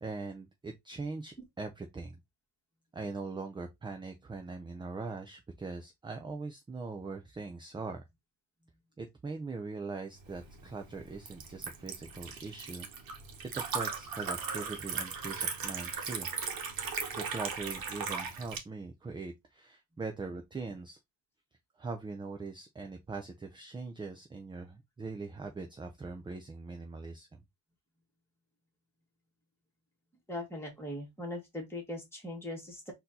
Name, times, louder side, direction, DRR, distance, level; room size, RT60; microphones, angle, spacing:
voice 1, 0.0-2.2 2.9-8.0 9.0-12.9 13.4-16.3 17.1-21.0 21.8-27.4, right 4 dB, 10° right, 0.4 m, -41 dB
Liquid, 10.2-18.6, right 6 dB, 45° right, 1.3 m, -38 dB
voice 2, 30.3-32.9, left 1 dB, 5° left, 1.9 m, -40 dB
4.2 x 2.8 x 3.8 m
cardioid pair, 140°, 47 cm